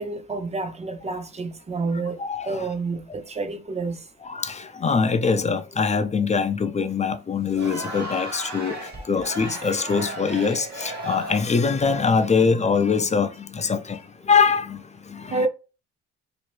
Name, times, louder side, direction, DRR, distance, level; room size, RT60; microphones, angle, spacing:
voice 1, 0.0-2.2 2.5-4.0 15.3-15.5, right 3 dB, 20° right, 0.7 m, -28 dB
voice 2, 2.2-2.7 4.2-15.5, left 5 dB, 25° left, 0.4 m, -23 dB
Crowd, 7.4-11.6, right 1 dB, 65° right, 1.3 m, -35 dB
2.9 x 2.5 x 3.0 m
cardioid pair, 90°, 30 cm